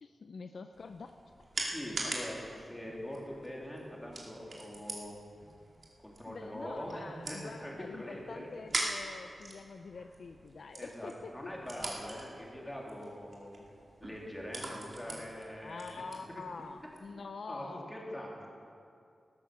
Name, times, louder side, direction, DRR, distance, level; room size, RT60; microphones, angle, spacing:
voice 1, 0.0-1.1 6.2-11.3 14.7-15.3 15.6-17.9, left 4 dB, 65° left, 7 dB, 0.6 m, -46 dB
sound 1, 0.7-17.1, right 2 dB, 45° right, 2.6 m, -43 dB
voice 2, 1.6-5.2 6.0-8.5 10.8-13.6 14.0-16.0 17.5-18.5, equal, 10° left, -3 dB, 3.1 m, -43 dB
15.0 x 13.0 x 6.7 m, 2.4 s
wide cardioid pair, 145°, 0 cm